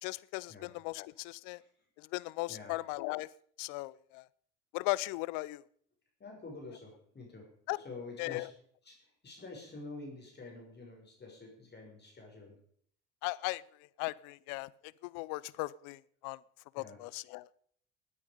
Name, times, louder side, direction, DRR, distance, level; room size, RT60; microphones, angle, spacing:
voice 1, 0.0-1.6 2.0-3.3 3.6-4.3 4.7-5.6 7.7-7.8 8.2-8.5 13.2-13.6 14.0-16.4 16.7-17.5, left 22 dB, 65° left, 21 dB, 0.6 m, -37 dB
voice 2, 6.2-8.5 8.8-12.6 16.7-17.0, left 3 dB, 30° left, 0 dB, 6.0 m, -48 dB
16.5 x 9.6 x 5.3 m, 0.62 s
hypercardioid pair, 70°, 35 cm